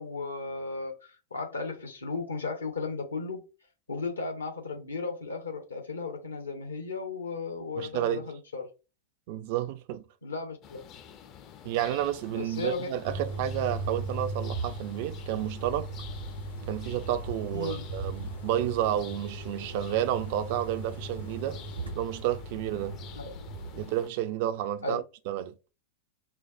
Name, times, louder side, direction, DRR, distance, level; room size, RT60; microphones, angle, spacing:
voice 1, 0.0-3.4 3.9-8.7 10.2-10.8 12.3-12.9 17.5-17.8 23.1-23.2 24.8-25.0, left 4 dB, 75° left, 1.0 m, -35 dB
voice 2, 7.8-8.2 9.3-10.0 11.6-15.9 16.7-21.6 22.0-23.0 23.7-25.5, right 12 dB, 50° right, 0.3 m, -31 dB
sound 1, 10.6-24.1, left 9 dB, 35° left, 0.4 m, -49 dB
sound 2, 13.0-23.9, right 2 dB, 90° right, 0.9 m, -38 dB
4.4 x 2.0 x 2.5 m
figure-of-eight pair, 90°, 0 cm